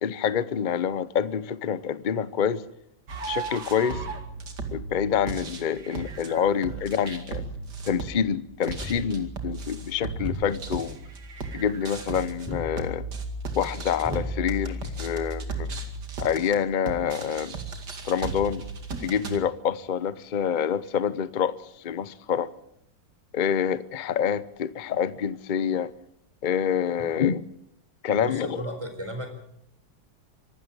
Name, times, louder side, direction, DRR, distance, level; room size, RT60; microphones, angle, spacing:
voice 1, 0.0-2.6 3.3-4.0 4.7-7.4 7.9-11.0 11.5-13.0 13.5-15.7 16.2-17.6 18.0-18.6 19.0-21.6 21.8-22.5 23.3-25.9 26.4-27.4 28.0-28.6, left 8 dB, 45° left, 0.6 m, -27 dB
sound 1, 3.1-19.4, right 4 dB, 60° right, 2.9 m, -37 dB
sound 2, 8.7-16.1, left 1 dB, 5° left, 3.3 m, -37 dB
voice 2, 28.2-29.4, equal, 15° right, 4.4 m, -34 dB
25.0 x 12.5 x 8.8 m
omnidirectional pair, 2.0 m